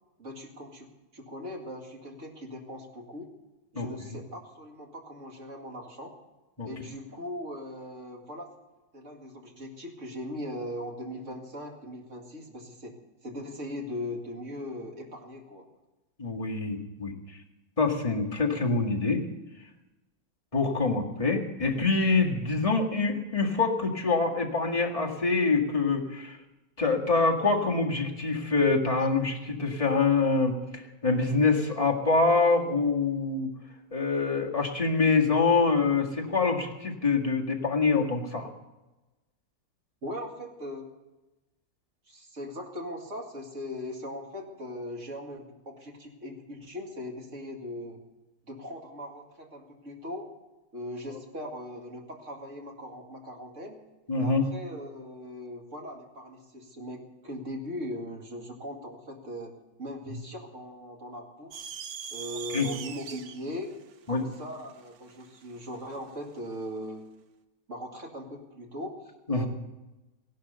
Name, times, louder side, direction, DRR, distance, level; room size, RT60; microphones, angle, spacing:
voice 1, 0.2-0.9 1.1-3.3 3.7-6.1 6.6-8.5 8.9-13.0 13.2-15.6 40.0-40.9 42.1-48.0 48.4-50.3 50.7-53.8 54.2-59.5 59.8-61.7 62.1-63.7 64.1-67.1 67.7-69.5, left 1 dB, 40° right, 1 dB, 2.4 m, -39 dB
voice 2, 3.8-4.2 6.6-6.7 16.2-17.1 17.8-19.2 20.5-26.4 26.8-33.5 33.9-38.5 54.1-54.5 62.5-62.7 64.1-64.2 69.3-69.5, left 4 dB, 20° left, -1 dB, 1.9 m, -25 dB
sound 1, 61.5-66.0, right 8 dB, 85° right, 1.7 m, -42 dB
16.5 x 11.5 x 6.9 m, 1.1 s
omnidirectional pair, 2.0 m